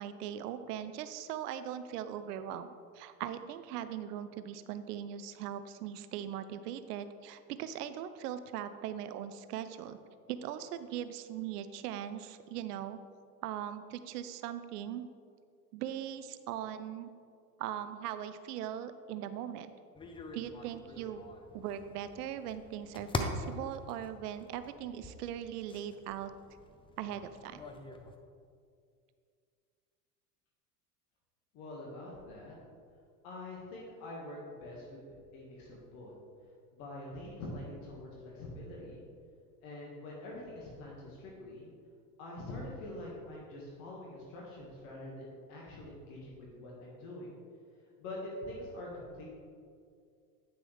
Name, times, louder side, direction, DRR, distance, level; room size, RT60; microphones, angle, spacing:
voice 1, 0.0-2.7 2.9-10.0 10.3-13.0 13.4-15.1 15.7-17.1 17.6-19.7 20.3-21.3 21.5-26.3 27.0-27.6, right 10 dB, 70° right, 11 dB, 0.6 m, -40 dB
sound 1, 19.9-28.2, left 2 dB, 10° left, 0.5 m, -43 dB
voice 2, 31.5-32.5 33.2-36.1 36.7-39.0 39.6-41.7 42.2-47.3 48.0-49.3, left 1 dB, 60° left, -3 dB, 1.9 m, -45 dB
9.4 x 6.1 x 3.4 m, 2.2 s
hypercardioid pair, 90°, 48 cm